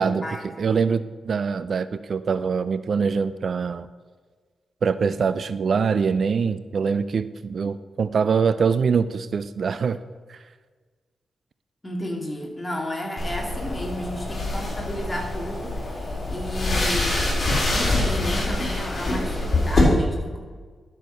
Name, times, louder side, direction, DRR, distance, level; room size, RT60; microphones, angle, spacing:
voice 1, 0.0-3.9 4.8-10.0 10.3-10.4, right 5 dB, 60° right, 15 dB, 0.4 m, -24 dB
voice 2, 11.8-17.2 17.7-20.4, left 1 dB, 25° left, 1 dB, 2.4 m, -32 dB
sound 1, 13.2-19.8, left 2 dB, 40° left, 3.7 m, -25 dB
12.0 x 6.3 x 5.5 m, 1.5 s
cardioid pair, 60°, 0 cm